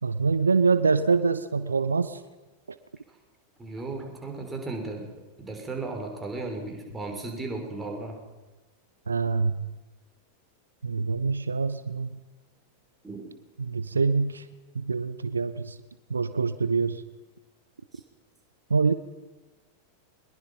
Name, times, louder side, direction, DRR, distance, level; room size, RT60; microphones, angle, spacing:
voice 1, 0.0-2.2 9.1-9.5 10.8-12.2 13.6-14.4 14.7-15.8 16.1-17.0 18.7-18.9, right 4 dB, 75° right, 14 dB, 0.8 m, -25 dB
voice 2, 3.6-5.1 5.4-8.2 13.0-13.3 17.9-18.0, right 3 dB, 10° right, 1 dB, 5.7 m, -35 dB
23.0 x 21.5 x 5.6 m, 1.2 s
figure-of-eight pair, 90°, 0 cm